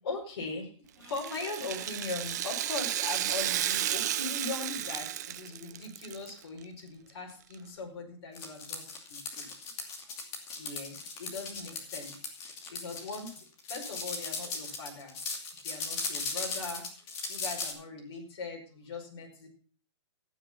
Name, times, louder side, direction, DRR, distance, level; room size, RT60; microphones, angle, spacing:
voice 1, 0.0-9.5 10.0-10.1 10.5-12.2 12.7-13.4 13.7-15.2 15.6-16.9 17.3-19.5, left 3 dB, 50° left, -1 dB, 5.1 m, -40 dB
Rattle (instrument), 1.0-6.3 6.6-6.7 7.5-7.6, right 11 dB, 35° right, 0.5 m, -33 dB
sound 1, 8.3-17.7, left 4 dB, 20° left, 2.6 m, -38 dB
14.0 x 9.1 x 6.0 m, 0.42 s
hypercardioid pair, 170°, 16 cm